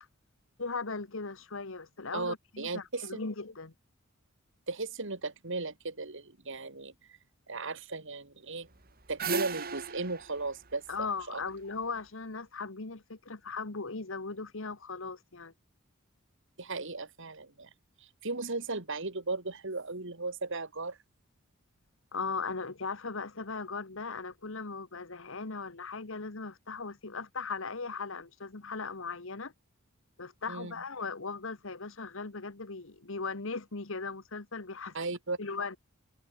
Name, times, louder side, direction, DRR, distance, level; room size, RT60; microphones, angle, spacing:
voice 1, 0.6-3.7 10.9-15.5 22.1-29.5 30.2-35.0 35.4-35.8, left 4 dB, 65° left, 1.5 m, -38 dB
voice 2, 2.1-3.2 4.7-7.2 7.5-8.7 9.1-11.4 16.6-17.7 18.0-21.0 30.5-30.7 34.9-35.4, right 3 dB, 60° right, 2.9 m, -36 dB
sound 1, 8.7-11.8, right 5 dB, 45° right, 4.3 m, -37 dB
open air
head